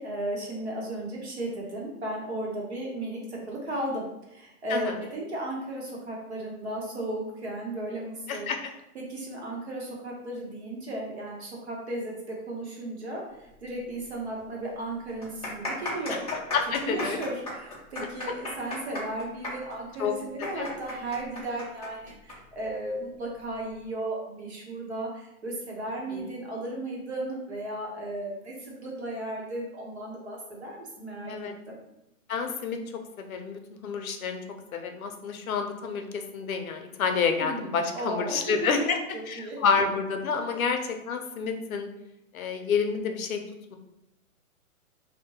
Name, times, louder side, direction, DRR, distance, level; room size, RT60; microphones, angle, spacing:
voice 1, 0.0-8.5 8.9-13.2 13.6-16.2 16.8-31.3 31.7-31.8 37.4-39.6 40.5-40.6, right 1 dB, 50° right, -2 dB, 0.8 m, -35 dB
sound 1, 14.0-14.1 14.4-14.5 15.1-22.4 22.6-22.7 23.5-23.8, left 1 dB, 30° left, 0.5 m, -36 dB
voice 2, 16.5-17.2 20.0-20.1 20.4-20.7 26.1-26.2 31.2-31.6 32.3-32.8 33.2-34.4 34.7-39.0 39.3-41.9 42.3-43.4 43.7-43.8, left 5 dB, 70° left, 5 dB, 0.6 m, -29 dB
2.7 x 2.1 x 2.7 m, 0.87 s
hypercardioid pair, 180°, 43 cm